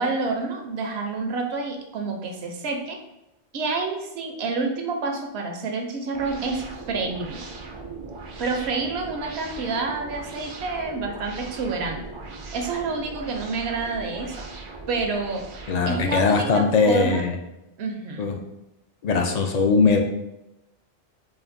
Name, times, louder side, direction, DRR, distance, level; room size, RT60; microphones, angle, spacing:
voice 1, 0.0-3.0 3.5-7.5 8.4-12.0 12.5-14.5 14.9-17.2 17.8-18.3, right 3 dB, 75° right, 3 dB, 0.8 m, -28 dB
sound 1, 6.1-16.4, right 3 dB, 55° right, 0.3 m, -39 dB
voice 2, 15.7-17.3 18.2-18.4 19.0-20.0, left 4 dB, 60° left, 3 dB, 0.4 m, -20 dB
5.0 x 2.5 x 2.5 m, 0.91 s
omnidirectional pair, 1.1 m